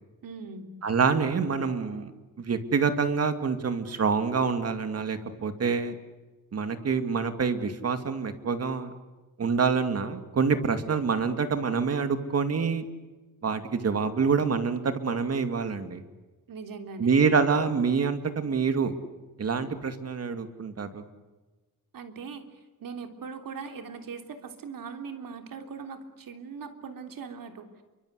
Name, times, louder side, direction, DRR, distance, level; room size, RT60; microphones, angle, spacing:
voice 1, 0.2-0.7 16.5-17.1 21.9-22.4 22.8-27.7, right 5 dB, 70° right, 6 dB, 3.5 m, -40 dB
voice 2, 0.8-2.1 2.4-5.9 6.5-8.9 9.4-12.8 13.4-16.0 17.0-18.9 19.4-21.0, right 5 dB, 45° right, 8 dB, 2.5 m, -26 dB
29.5 x 24.5 x 8.2 m, 1.2 s
wide cardioid pair, 165°, 34 cm